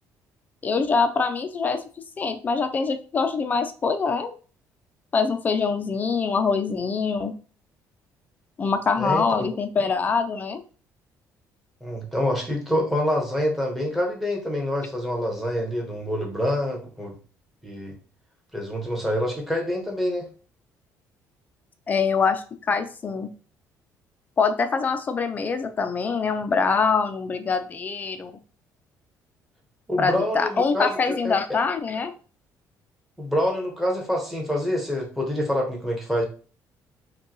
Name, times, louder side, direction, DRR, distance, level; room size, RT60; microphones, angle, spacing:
voice 1, 0.6-1.8 2.2-4.3 5.1-7.4 8.6-10.6 21.9-23.3 24.4-28.3 30.0-32.1, left 5 dB, 25° left, 8 dB, 0.4 m, -24 dB
voice 2, 9.0-9.5 11.8-17.1 17.6-17.9 18.5-20.3 29.9-31.3 33.2-36.3, left 1 dB, 5° right, 0 dB, 1.0 m, -26 dB
5.3 x 2.3 x 3.0 m, 0.38 s
cardioid pair, 160°, 7 cm